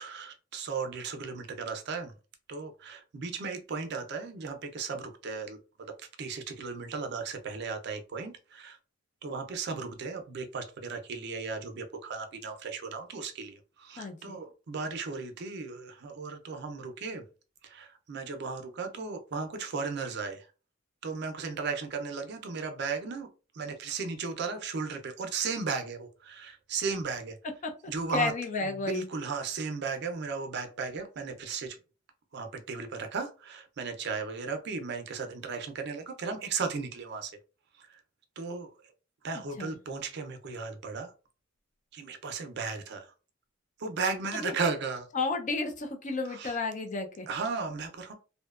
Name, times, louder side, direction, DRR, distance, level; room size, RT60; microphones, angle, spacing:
voice 1, 0.0-2.1 2.5-5.9 6.2-8.8 9.2-17.2 17.6-20.5 21.0-23.3 23.5-27.4 27.9-28.3 28.6-31.8 32.3-37.3 37.9-38.0 38.4-38.7 39.2-41.1 41.9-43.1 43.8-45.1 46.3-46.6 47.3-48.1, right 4 dB, 60° right, 0.4 m, -35 dB
voice 2, 14.0-14.4 27.6-27.7 28.1-29.1 39.6-39.8 44.3-44.5 45.1-47.3, left 3 dB, 40° left, 0.4 m, -32 dB
2.6 x 2.2 x 2.3 m
head